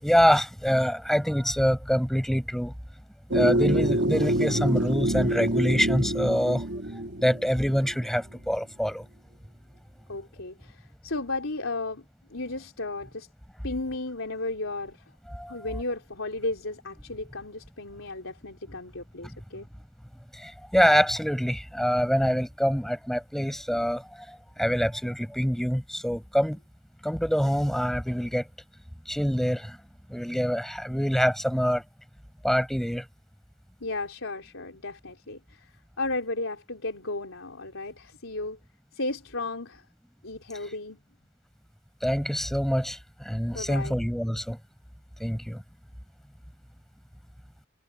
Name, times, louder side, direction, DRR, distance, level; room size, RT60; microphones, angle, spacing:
voice 1, 0.0-2.7 3.3-6.6 7.2-9.0 15.3-15.5 20.4-24.0 24.6-26.6 27.0-28.4 29.1-29.8 30.1-31.8 32.4-33.0 42.0-43.0 43.2-44.6 45.2-45.6, equal, ahead, 6.7 m, -25 dB
sound 1, 3.3-7.9, right 1 dB, 60° right, 2.9 m, -26 dB
voice 2, 10.1-12.0 12.3-13.3 13.6-15.0 15.5-19.7 33.8-35.7 36.0-38.6 38.9-39.8 40.2-41.0 43.5-44.0, left 2 dB, 80° left, 3.8 m, -34 dB
head